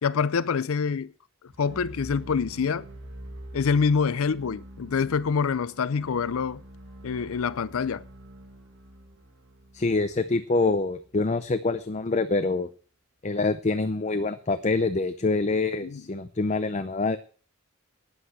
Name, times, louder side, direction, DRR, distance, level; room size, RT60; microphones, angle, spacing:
voice 1, 0.0-1.1 1.6-2.9 3.5-6.6 7.0-8.0 15.8-16.0, left 5 dB, 80° left, 0.5 m, -26 dB
sound 1, 1.5-11.5, right 1 dB, 60° right, 1.9 m, -46 dB
voice 2, 9.7-12.7 13.2-17.2, left 3 dB, 35° left, 0.6 m, -25 dB
9.8 x 8.7 x 7.7 m
head